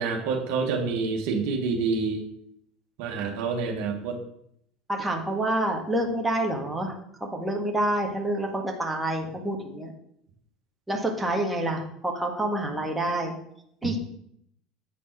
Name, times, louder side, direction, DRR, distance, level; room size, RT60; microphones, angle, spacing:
voice 1, 0.0-2.2 3.0-4.2, right 4 dB, 70° right, 2 dB, 1.3 m, -27 dB
voice 2, 4.9-6.9 7.2-9.9 10.9-13.3 13.8-14.0, right 1 dB, 10° right, 0 dB, 1.5 m, -27 dB
8.4 x 4.1 x 4.6 m, 0.72 s
hypercardioid pair, 80°, 0 cm